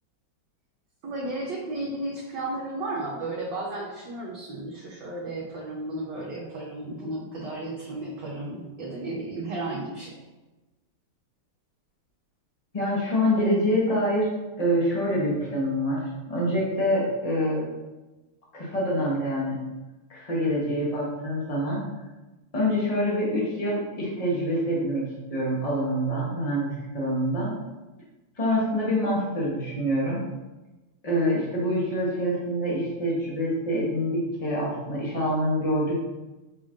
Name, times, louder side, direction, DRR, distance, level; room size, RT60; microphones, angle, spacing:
voice 1, 1.0-10.1, right 2 dB, 65° right, -4 dB, 1.2 m, -33 dB
voice 2, 12.7-14.3 14.6-17.6 18.5-19.6 20.1-21.8 22.5-25.0 25.3-27.5 28.4-30.2 31.0-36.0, equal, 35° left, -5 dB, 0.5 m, -26 dB
5.2 x 2.5 x 3.6 m, 1.1 s
omnidirectional pair, 2.3 m